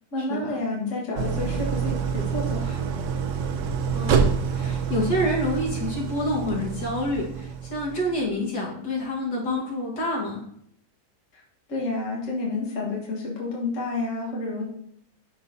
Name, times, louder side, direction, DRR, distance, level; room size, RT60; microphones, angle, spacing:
voice 1, 0.1-2.8 11.3-11.4 11.7-14.6, left 2 dB, 50° left, -3 dB, 1.6 m, -30 dB
Idling, 1.2-8.2, right 6 dB, 65° right, 0.7 m, -27 dB
voice 2, 3.9-10.4, left 1 dB, 70° left, -3 dB, 2.2 m, -28 dB
11.0 x 4.0 x 2.6 m, 0.68 s
omnidirectional pair, 1.8 m